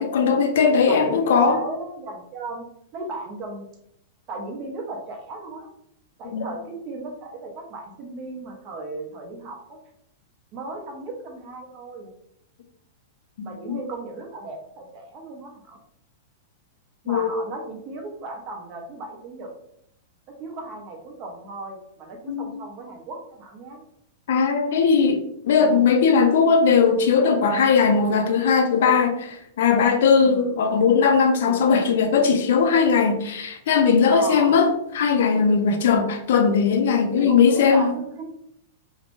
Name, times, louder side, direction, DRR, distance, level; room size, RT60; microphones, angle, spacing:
voice 1, 0.0-1.6 6.3-6.5 13.4-13.8 17.1-17.3 22.3-22.5 24.3-25.2 25.4-37.9, left 5 dB, 70° left, 6 dB, 0.4 m, -19 dB
voice 2, 0.9-2.7 2.9-3.7 4.3-5.7 6.2-9.8 10.5-12.1 13.4-15.8 17.0-19.5 20.4-23.8 25.6-25.9 30.2-30.5 31.5-31.8 34.1-34.5 37.1-38.2, right 2 dB, 35° right, 2 dB, 0.7 m, -35 dB
2.7 x 2.1 x 2.9 m, 0.74 s
hypercardioid pair, 140°, 0 cm